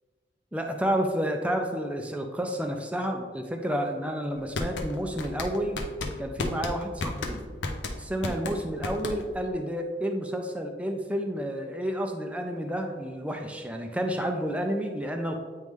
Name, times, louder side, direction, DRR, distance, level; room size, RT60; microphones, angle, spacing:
voice 1, 0.5-5.8 6.2-7.4 8.0-15.4, equal, 5° right, 3 dB, 0.5 m, -30 dB
sound 1, 4.3-9.5, left 2 dB, 80° left, 0.6 m, -33 dB
9.1 x 3.1 x 3.5 m, 1.4 s
head